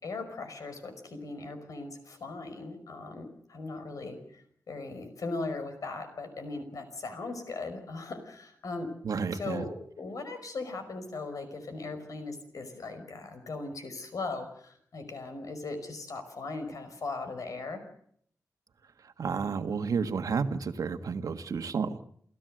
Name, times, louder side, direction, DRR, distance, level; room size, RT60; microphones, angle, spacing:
voice 1, 0.0-8.9 9.3-17.8, left 3 dB, 60° left, 8 dB, 5.4 m, -39 dB
voice 2, 9.0-9.6 19.0-22.0, right 5 dB, 65° right, 8 dB, 1.6 m, -31 dB
28.5 x 16.5 x 7.8 m, 0.65 s
wide cardioid pair, 165°, 6 cm